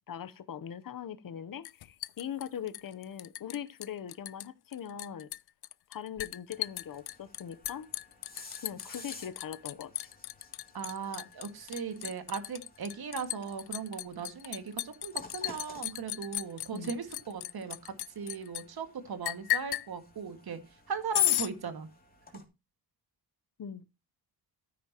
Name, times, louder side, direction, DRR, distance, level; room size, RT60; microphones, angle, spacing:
voice 1, 0.1-5.3 5.9-7.9 8.6-10.1 11.9-12.1 16.7-16.9 23.6-23.8, left 9 dB, 60° left, 0.9 m, -41 dB
Liquid, 1.7-3.6 3.8-4.5 4.7-18.6 19.2-19.9 21.1-21.5, left 14 dB, 80° left, 0.5 m, -34 dB
sound 1, 6.5-22.4, left 2 dB, 25° left, 2.8 m, -55 dB
voice 2, 10.7-20.6 20.9-21.9, right 6 dB, 70° right, 2.1 m, -38 dB
13.0 x 10.0 x 2.9 m
wide cardioid pair, 120°, 38 cm